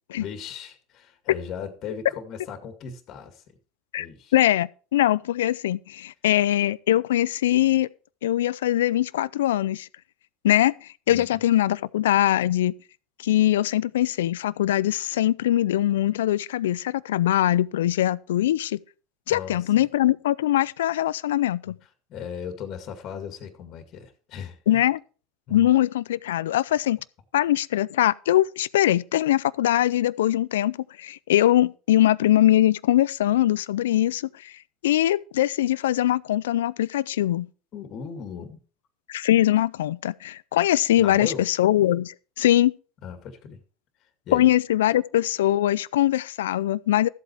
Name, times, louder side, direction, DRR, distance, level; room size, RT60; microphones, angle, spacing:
voice 1, 0.1-3.4 4.0-4.3 11.1-11.4 19.3-19.9 22.1-24.8 25.5-25.7 37.7-38.6 40.9-41.5 43.0-43.6 44.3-44.5, left 7 dB, 50° left, 2.1 m, -37 dB
voice 2, 4.3-7.9 8.2-9.9 10.4-12.7 13.2-18.8 19.3-21.8 24.7-25.0 25.5-27.0 27.3-34.5 34.8-37.5 39.1-42.7 44.3-47.1, left 13 dB, 80° left, 0.4 m, -22 dB
13.5 x 8.1 x 4.6 m
hypercardioid pair, 80°, 0 cm